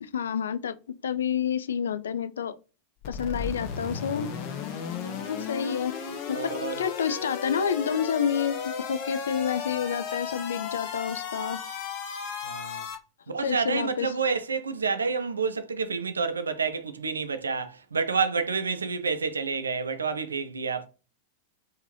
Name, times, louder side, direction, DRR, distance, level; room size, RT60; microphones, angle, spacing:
voice 1, 0.0-2.5 3.1-4.3 5.3-5.9 6.3-6.5 6.8-11.6 13.4-14.1, left 7 dB, 65° left, 0.3 m, -29 dB
sound 1, 3.0-13.0, left 7 dB, 45° left, 0.8 m, -35 dB
voice 2, 5.0-5.3 6.3-6.8 12.4-12.8 13.3-20.9, right 5 dB, 75° right, 0.4 m, -29 dB
3.6 x 2.6 x 3.1 m
figure-of-eight pair, 90°, 0 cm